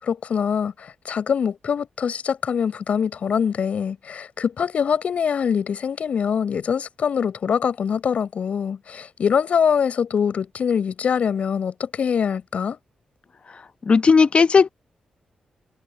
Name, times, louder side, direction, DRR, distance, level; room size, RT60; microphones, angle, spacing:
voice 1, 0.0-12.8, left 7 dB, 65° left, 6.4 m, -23 dB
voice 2, 13.9-14.7, left 5 dB, 50° left, 0.9 m, -15 dB
supercardioid pair, 50°, 2 cm